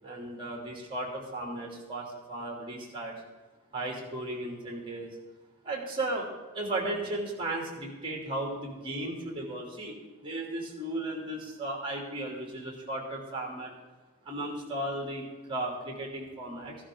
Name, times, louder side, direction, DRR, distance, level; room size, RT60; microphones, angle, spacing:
voice 1, 0.0-3.1 3.7-5.1 5.6-6.3 6.5-13.7 14.2-16.8, right 1 dB, 25° right, 0 dB, 2.9 m, -35 dB
15.0 x 11.5 x 3.8 m, 1.3 s
head